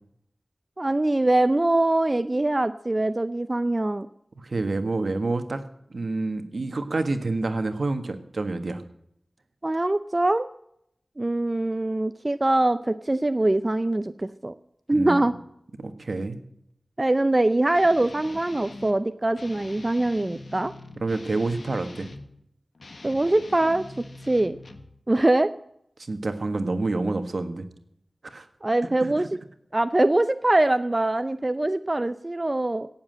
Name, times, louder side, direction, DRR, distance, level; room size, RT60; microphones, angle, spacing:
voice 1, 0.8-4.1 9.6-10.5 11.2-14.5 14.9-15.3 17.0-20.7 23.0-23.8 24.3-24.6 25.1-25.5 28.6-29.3 29.7-32.9, right 2 dB, 30° right, 11 dB, 0.5 m, -23 dB
voice 2, 4.4-5.6 5.9-8.8 14.9-15.2 15.8-16.4 21.0-22.1 26.0-27.7 28.3-28.5 29.0-29.3, right 3 dB, 70° right, 9 dB, 1.5 m, -28 dB
Guitar, 17.7-19.0 19.3-22.3 22.7-24.9, left 2 dB, 75° left, 1.4 m, -43 dB
17.5 x 7.4 x 7.5 m, 0.74 s
wide cardioid pair, 65°, 0 cm